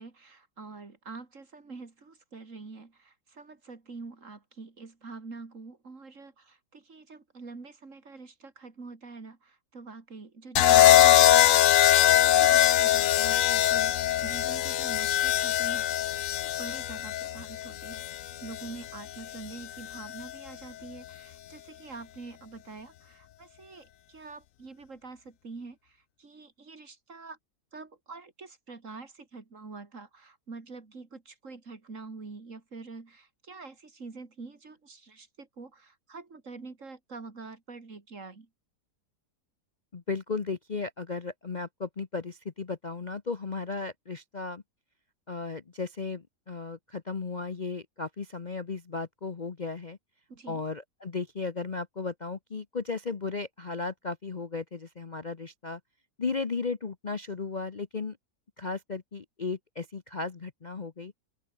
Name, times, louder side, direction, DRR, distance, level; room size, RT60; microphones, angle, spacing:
voice 1, 0.0-27.4 27.7-38.5 50.3-50.6, right 4 dB, 50° right, 3.0 m, -46 dB
sound 1, 10.6-18.7 19.9-20.3, left 13 dB, 65° left, 0.9 m, -22 dB
voice 2, 39.9-44.6 45.3-50.0 50.5-55.8 56.2-58.2 58.6-61.1, left 4 dB, 35° left, 0.9 m, -35 dB
open air
omnidirectional pair, 1.7 m